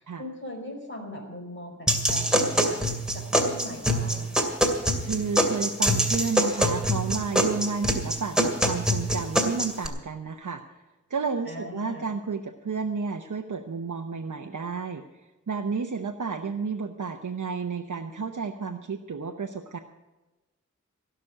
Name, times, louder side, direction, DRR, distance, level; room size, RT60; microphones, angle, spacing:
voice 1, 0.0-4.5 11.4-12.1, left 1 dB, 40° left, 1 dB, 5.0 m, -40 dB
sound 1, 1.9-9.9, equal, ahead, 2.4 m, -24 dB
voice 2, 5.0-10.8 11.1-19.8, right 5 dB, 75° right, 3 dB, 0.9 m, -31 dB
16.5 x 6.2 x 9.8 m, 1.1 s
cardioid pair, 40°, 30 cm